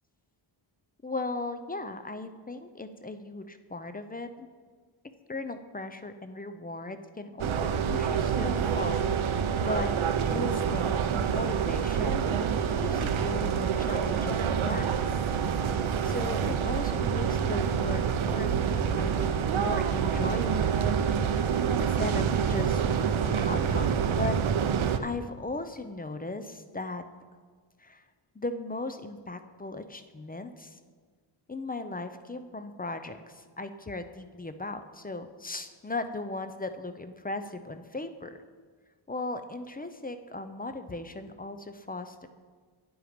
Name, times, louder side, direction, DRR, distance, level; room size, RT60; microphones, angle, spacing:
voice 1, 1.0-4.5 5.3-10.0 10.3-15.0 16.0-20.8 21.8-22.9 23.2-27.1 27.8-28.0 28.3-30.8 31.5-38.4 39.1-42.3, left 2 dB, 20° left, 9 dB, 0.4 m, -37 dB
sound 1, 7.4-25.0, right 7 dB, 70° right, 0.7 m, -27 dB
10.0 x 7.9 x 5.1 m, 1.5 s
wide cardioid pair, 160°, 50 cm